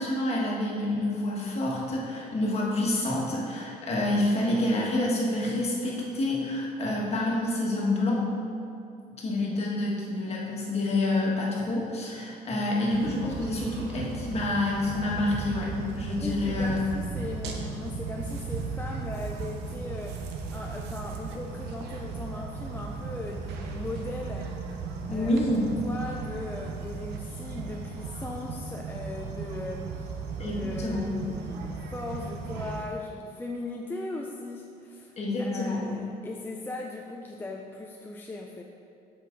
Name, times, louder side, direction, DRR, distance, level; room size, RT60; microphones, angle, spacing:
voice 1, 0.0-8.2 9.2-16.8 25.1-25.7 30.4-31.1 35.2-35.8, left 1 dB, 40° left, -4 dB, 1.6 m, -28 dB
sound 1, 12.9-32.9, right 4 dB, 80° right, 0.8 m, -36 dB
voice 2, 16.2-24.5 25.1-25.3 25.8-30.1 30.4-38.6, left 2 dB, 10° left, 0 dB, 0.4 m, -38 dB
7.4 x 5.2 x 3.9 m, 2.5 s
cardioid pair, 110°, 17 cm